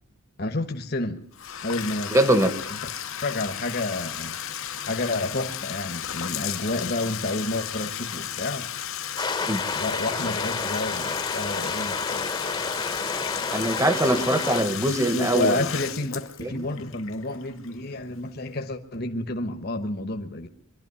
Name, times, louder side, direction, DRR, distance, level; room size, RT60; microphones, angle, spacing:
voice 1, 0.4-1.2 1.6-2.1 2.7-2.8 3.2-4.4 4.9-8.7 9.7-12.4 15.1-20.5, left 2 dB, 45° left, 6 dB, 1.2 m, -30 dB
Bathtub (filling or washing), 1.3-18.1, left 10 dB, 70° left, 0.9 m, -34 dB
voice 2, 2.1-2.5 9.5-9.6 13.5-15.7 16.4-16.5, right 1 dB, 15° right, 10 dB, 1.2 m, -22 dB
sound 1, 9.2-14.6, left 4 dB, 20° left, 1.0 m, -30 dB
23.0 x 12.0 x 9.6 m, 0.70 s
head